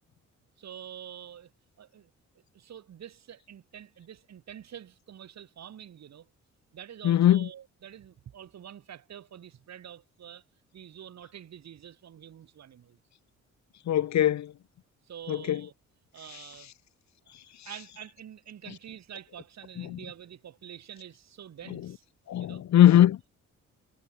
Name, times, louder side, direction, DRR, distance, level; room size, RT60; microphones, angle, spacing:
voice 1, 0.6-1.5 1.8-2.1 2.5-6.3 6.7-10.4 10.7-13.0 15.0-15.7 16.1-16.7 17.2-17.3 17.6-22.0 22.3-22.6, right 9 dB, 60° right, 5.2 m, -46 dB
voice 2, 7.0-7.5 13.9-14.5 15.3-15.6 19.8-20.0 22.3-23.2, left 11 dB, 65° left, 1.5 m, -21 dB
cardioid pair, 90°, 30 cm